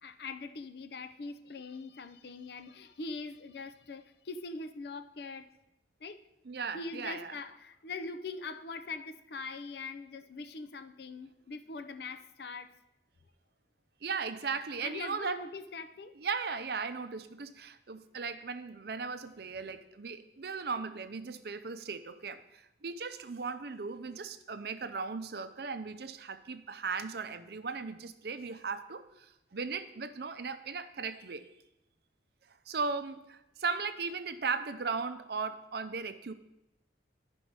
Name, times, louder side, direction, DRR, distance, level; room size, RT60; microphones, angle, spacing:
voice 1, 0.0-5.5 6.0-6.2 6.7-12.7 14.8-16.1, left 3 dB, 60° left, 0.5 m, -42 dB
voice 2, 6.4-7.4 14.0-15.4 16.1-31.5 32.7-36.3, right 5 dB, 55° right, 0.5 m, -37 dB
11.5 x 5.2 x 4.7 m
head